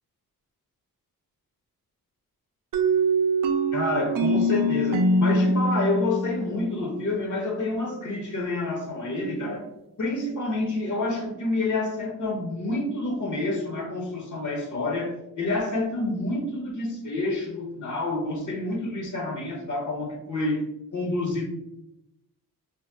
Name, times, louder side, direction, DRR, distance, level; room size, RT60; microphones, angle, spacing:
sound 1, 2.7-7.4, right 1 dB, 65° right, 0.5 m, -24 dB
voice 1, 3.7-9.6 10.0-20.6 20.9-21.5, left 2 dB, 55° left, 1 dB, 0.7 m, -28 dB
2.7 x 2.0 x 3.3 m, 0.86 s
cardioid pair, 90°, 36 cm